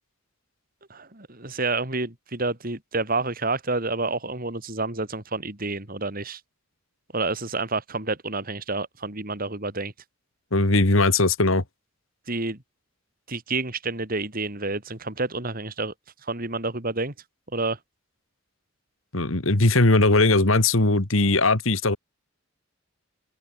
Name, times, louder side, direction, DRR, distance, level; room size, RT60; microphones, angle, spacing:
voice 1, 0.9-6.4 7.1-9.9 12.3-12.6 13.3-15.9 16.2-17.1 17.5-17.8, right 3 dB, 45° right, 3.4 m, -29 dB
voice 2, 10.5-11.6 19.1-22.0, left 2 dB, 75° left, 2.2 m, -19 dB
open air
head